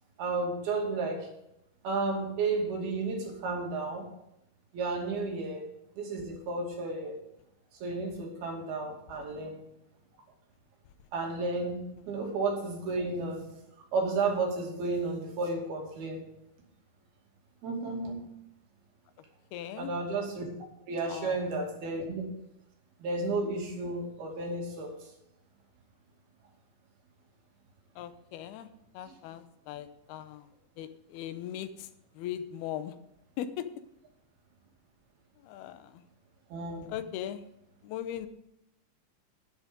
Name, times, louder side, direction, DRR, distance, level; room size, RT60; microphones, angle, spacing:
voice 1, 0.2-1.3 1.8-4.0 4.7-5.6 6.0-7.1 7.8-9.6 11.1-13.5 13.9-16.2 17.6-18.2 19.8-20.5 20.9-22.3 23.0-24.9 36.5-36.9, right 3 dB, 80° right, 0 dB, 4.5 m, -32 dB
voice 2, 19.5-20.0 21.1-21.4 28.0-28.7 28.9-30.5 30.8-31.9 32.1-33.0 33.4-33.7 35.4-36.1 36.9-37.4 37.8-38.3, left 10 dB, 85° left, 11 dB, 2.8 m, -39 dB
11.0 x 10.0 x 5.2 m, 0.83 s
omnidirectional pair, 4.4 m